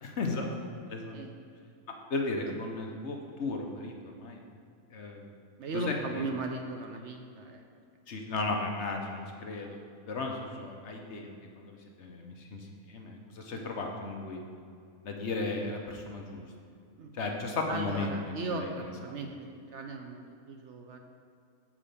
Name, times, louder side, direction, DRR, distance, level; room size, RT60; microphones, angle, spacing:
voice 1, 0.0-0.5 0.9-1.2 2.1-3.9 4.2-4.4 4.9-5.3 5.7-6.3 8.1-9.8 10.1-14.4 15.0-16.4 17.1-18.9, left 3 dB, 55° left, 2 dB, 1.1 m, -35 dB
voice 2, 5.6-7.6 13.5-13.7 17.0-17.1 17.7-21.0, right 3 dB, 60° right, 3 dB, 0.9 m, -37 dB
7.4 x 4.9 x 6.7 m, 2.4 s
omnidirectional pair, 1.5 m